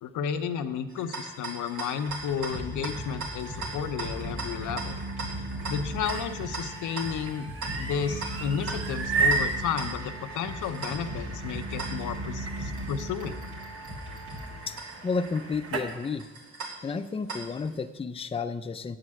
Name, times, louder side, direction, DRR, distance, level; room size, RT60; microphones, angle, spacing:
voice 1, 0.0-4.9 5.7-7.5 7.8-13.4, left 7 dB, 90° left, 8 dB, 0.8 m, -32 dB
sound 1, 0.9-17.8, right 3 dB, 70° right, 2.7 m, -41 dB
sound 2, 2.1-15.1, right 1 dB, 90° right, 3.2 m, -37 dB
sound 3, 5.8-15.9, right 4 dB, 50° right, 1.4 m, -34 dB
voice 2, 14.7-16.3 16.8-19.0, left 4 dB, 20° left, 9 dB, 0.5 m, -32 dB
8.9 x 7.9 x 7.5 m, 1.1 s
cardioid pair, 105°, 29 cm